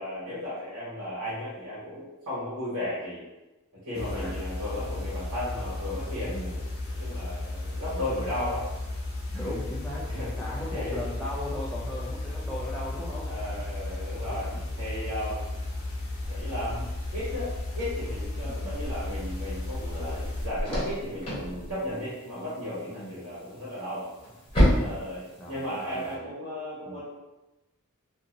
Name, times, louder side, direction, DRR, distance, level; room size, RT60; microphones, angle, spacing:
voice 1, 0.0-3.2 3.8-6.7 7.0-8.7 9.4-9.5 10.1-10.3 10.7-11.0 13.2-14.5 14.8-15.4 16.3-24.1 24.7-27.0, left 1 dB, 80° right, -10 dB, 1.4 m, -35 dB
sound 1, 3.9-20.5, left 2 dB, 70° left, 0.8 m, -34 dB
voice 2, 3.9-4.3 6.2-6.6 9.3-13.3 14.3-14.7 18.4-18.7 22.9-23.2 25.4-26.3 26.8-27.0, left 1 dB, 5° left, -7 dB, 0.3 m, -38 dB
Rattle (instrument), 16.2-21.5, equal, 25° right, 0.7 m, -41 dB
sound 2, 19.0-26.1, equal, 25° left, 1.0 m, -31 dB
2.8 x 2.6 x 2.6 m, 1.0 s
head